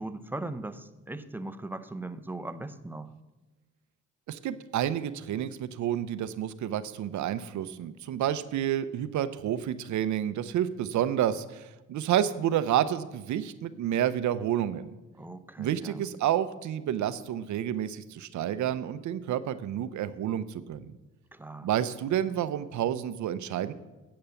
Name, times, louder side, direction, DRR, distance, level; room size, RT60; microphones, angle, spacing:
voice 1, 0.0-3.1 15.1-16.0 21.3-21.7, right 2 dB, 5° right, 10 dB, 0.8 m, -39 dB
voice 2, 4.3-14.9 15.6-20.9 21.6-23.7, right 11 dB, 70° right, 13 dB, 0.8 m, -29 dB
10.5 x 7.9 x 7.0 m, 1.1 s
cardioid pair, 90°, 30 cm